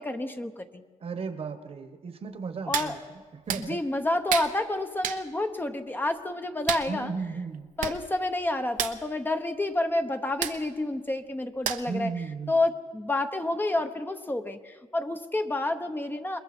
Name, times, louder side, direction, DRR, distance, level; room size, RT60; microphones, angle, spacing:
voice 1, 0.0-0.8 2.7-3.0 3.7-7.1 7.8-12.1 12.5-16.4, left 2 dB, 15° left, 6 dB, 1.0 m, -29 dB
voice 2, 1.0-3.8 6.9-7.7 11.9-12.6, right 4 dB, 45° right, 9 dB, 1.4 m, -35 dB
Hands, 2.7-2.9 3.5-3.6 4.3-4.5 5.0-5.2 6.7-6.9 7.5-7.6 7.8-8.0 8.2-8.4 8.7-9.0 10.4-10.6 11.6-12.0 12.4-12.5, right 9 dB, 85° right, 1.1 m, -30 dB
27.5 x 21.5 x 4.4 m, 1.5 s
cardioid pair, 120°, 13 cm